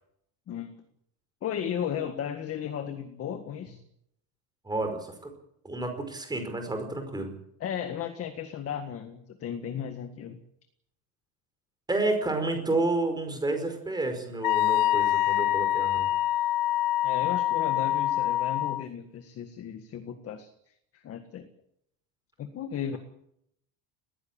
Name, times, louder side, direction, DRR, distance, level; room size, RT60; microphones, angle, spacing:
voice 1, 0.5-0.8 1.4-3.8 7.6-10.4 17.0-21.5 22.4-23.0, left 9 dB, 35° left, 8 dB, 1.8 m, -35 dB
voice 2, 4.6-5.3 5.6-7.3 11.9-16.1, right 2 dB, 10° right, 6 dB, 5.0 m, -30 dB
Wind instrument woodwind instrument, 14.4-18.8, left 14 dB, 50° left, 1.0 m, -25 dB
20.5 x 16.0 x 8.9 m, 0.74 s
cardioid pair, 165°, 43 cm